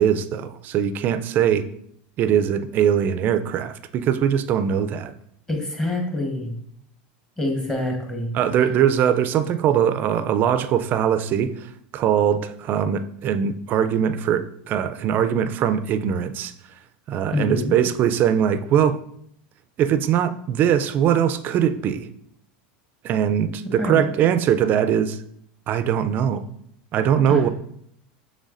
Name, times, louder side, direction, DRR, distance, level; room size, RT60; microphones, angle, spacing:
voice 1, 0.0-1.7 2.2-5.1 8.3-11.7 11.9-16.5 17.1-19.0 19.8-22.1 23.0-25.2 25.7-26.4 26.9-27.5, right 9 dB, 40° right, 0.3 m, -21 dB
voice 2, 5.5-6.5 7.4-8.3 17.3-17.8 23.8-24.1 27.3-27.4, left 1 dB, 15° left, 1.1 m, -25 dB
6.3 x 3.2 x 2.5 m
supercardioid pair, 125°, 5 cm